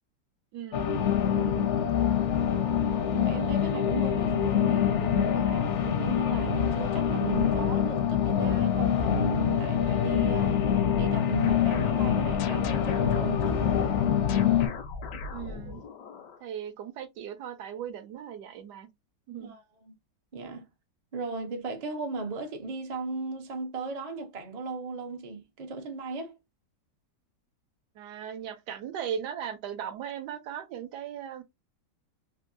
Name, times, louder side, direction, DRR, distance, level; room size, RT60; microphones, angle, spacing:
voice 1, 0.5-0.8 15.3-15.8 16.4-18.9 19.3-19.5 27.9-31.4, right 8 dB, 80° right, 1.2 m, -38 dB
sound 1, 0.7-14.7, left 9 dB, 70° left, 0.7 m, -25 dB
voice 2, 1.3-1.7 3.1-10.6 11.0-13.8 19.4-20.0 20.3-20.6 21.1-26.4, right 4 dB, 55° right, 0.4 m, -36 dB
sound 2, 10.2-16.4, left 3 dB, 90° left, 1.3 m, -38 dB
3.3 x 2.6 x 2.5 m
omnidirectional pair, 1.8 m